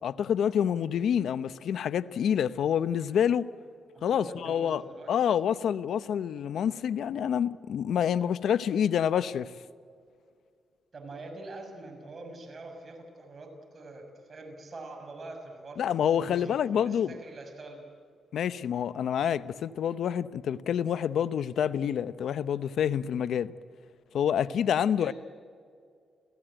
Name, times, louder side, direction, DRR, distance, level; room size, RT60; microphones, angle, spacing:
voice 1, 0.0-3.5 4.0-4.8 5.1-9.5 15.8-17.2 18.3-23.5 24.1-25.1, left 8 dB, 75° left, 0.8 m, -27 dB
voice 2, 3.9-5.1 10.9-17.8 24.9-25.1, right 2 dB, 40° right, 6.6 m, -44 dB
28.5 x 16.5 x 9.0 m
cardioid pair, 90°, 0 cm